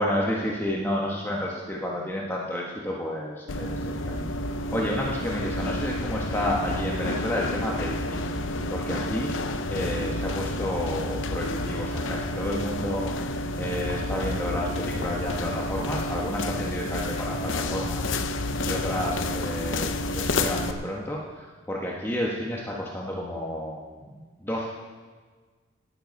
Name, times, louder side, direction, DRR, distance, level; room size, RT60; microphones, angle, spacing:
voice 1, 0.0-8.3 8.7-9.3 9.7-18.0 18.6-24.7, left 1 dB, 10° left, -3 dB, 1.4 m, -31 dB
sound 1, 3.5-20.7, left 1 dB, 75° left, 0.7 m, -30 dB
19.0 x 8.1 x 5.4 m, 1.4 s
head